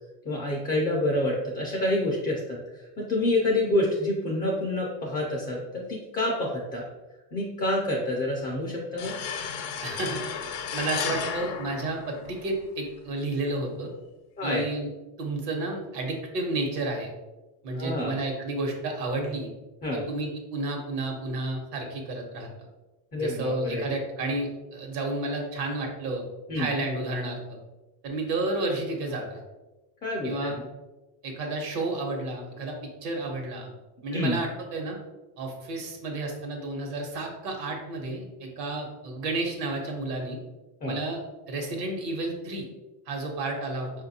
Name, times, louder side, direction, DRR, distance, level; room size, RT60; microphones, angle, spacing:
voice 1, 0.2-6.8 7.3-9.2 14.4-14.6 17.7-18.2 19.8-20.0 23.1-23.8 26.5-26.7 30.0-30.6 34.1-34.4 40.8-41.0, left 1 dB, 20° left, -2 dB, 0.4 m, -28 dB
sound 1, 9.0-12.6, left 7 dB, 70° left, 0.7 m, -33 dB
voice 2, 9.8-10.2 10.7-13.9 14.4-14.9 15.2-17.1 17.6-19.5 19.9-22.5 23.2-26.3 26.5-27.6 28.0-29.4 30.2-30.5 31.2-32.7 33.0-33.7 34.0-35.0 35.4-40.4 40.8-41.2 41.5-42.6 43.1-43.9, right 2 dB, 75° right, 2 dB, 1.1 m, -31 dB
4.5 x 2.5 x 2.7 m, 1.1 s
supercardioid pair, 120°, 49 cm